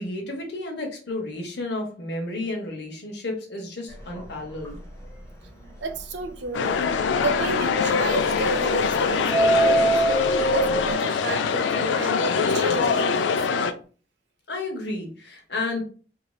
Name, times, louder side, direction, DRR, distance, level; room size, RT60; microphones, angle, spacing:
voice 1, 0.0-4.8 14.5-15.8, left 2 dB, 65° left, 0.9 m, -32 dB
Subway metro underground, 3.9-4.2 4.6-4.7 5.0-5.1 5.6-5.7 8.2-8.9 9.2-10.9, right 1 dB, 15° left, 0.8 m, -22 dB
voice 2, 5.8-6.8 7.2-10.0 10.4-12.2 12.5-13.6, right 2 dB, 75° right, 0.5 m, -31 dB
sound 1, 6.5-13.7, left 5 dB, 90° left, 0.3 m, -23 dB
3.1 x 2.7 x 2.3 m
head